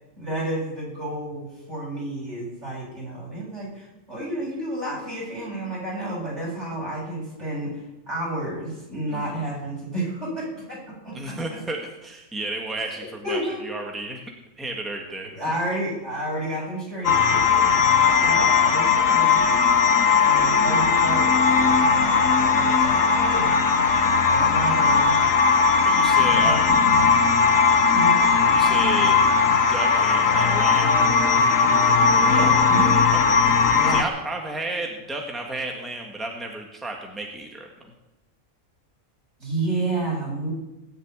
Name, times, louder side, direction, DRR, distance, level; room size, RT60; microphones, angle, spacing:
voice 1, 0.2-11.4 13.0-13.7 15.3-19.4 20.2-21.3 21.6-23.6 24.2-25.2 26.1-27.2 27.9-28.2 32.2-33.0 33.7-34.0 39.4-40.5, right 1 dB, 55° right, -4 dB, 8.0 m, -31 dB
voice 2, 11.1-14.2 14.6-15.4 18.1-18.5 20.2-20.4 24.0-24.2 25.6-27.0 28.5-29.2 29.4-31.0 33.1-33.4 33.9-37.7, right 2 dB, ahead, 1 dB, 1.8 m, -33 dB
sound 1, 17.0-34.0, left 5 dB, 70° left, 1.6 m, -18 dB
19.0 x 7.0 x 9.8 m, 0.99 s
omnidirectional pair, 1.4 m